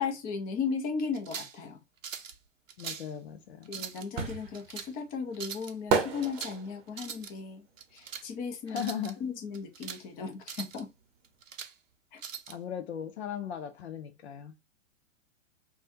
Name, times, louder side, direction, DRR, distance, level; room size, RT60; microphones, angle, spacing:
voice 1, 0.0-1.8 3.7-7.7 7.9-8.8 9.2-10.9 12.1-12.2, left 5 dB, 25° left, 0.7 m, -36 dB
sound 1, 1.1-1.6 2.0-2.4 2.7-3.1 3.6-4.1 4.5-4.9 5.3-5.7 6.2-6.6 6.9-7.3 7.8-8.3 8.7-9.1 9.5-10.0 10.4-10.8 11.2-11.7 12.2-12.6, right 7 dB, 85° right, 0.6 m, -41 dB
voice 2, 2.8-3.7 8.7-9.2 12.5-14.5, left 8 dB, 55° left, 0.6 m, -37 dB
sound 2, 3.3-9.1 9.4-11.0 11.3-11.4, right 5 dB, 30° right, 0.8 m, -34 dB
3.3 x 2.3 x 2.7 m
figure-of-eight pair, 115°, 39 cm